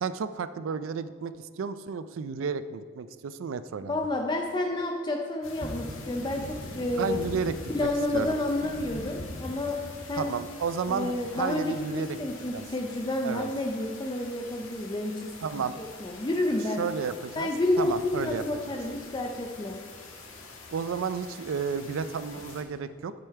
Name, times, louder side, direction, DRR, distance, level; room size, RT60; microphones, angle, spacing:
voice 1, 0.0-4.0 7.0-8.3 10.2-12.2 12.5-12.6 13.2-13.5 15.4-15.8 16.8-17.5 17.8-18.4 20.7-23.1, right 6 dB, 70° right, 13 dB, 0.4 m, -32 dB
voice 2, 3.9-7.2 7.7-9.8 10.1-10.3 10.9-16.8 17.4-19.8, left 2 dB, 20° left, 2 dB, 0.6 m, -30 dB
sound 1, 5.4-22.6, left 1 dB, 80° left, 1.7 m, -43 dB
10.5 x 6.8 x 4.6 m, 2.1 s
head